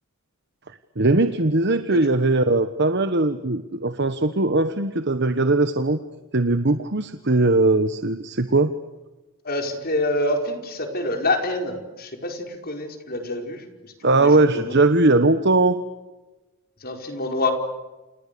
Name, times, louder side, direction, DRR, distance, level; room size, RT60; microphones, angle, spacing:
voice 1, 1.0-6.0 6.3-8.7 14.0-15.8, right 2 dB, 50° right, 10 dB, 1.3 m, -20 dB
voice 2, 9.4-14.8 16.8-17.5, left 2 dB, 40° left, 4 dB, 5.0 m, -27 dB
29.5 x 28.0 x 6.9 m, 1.1 s
head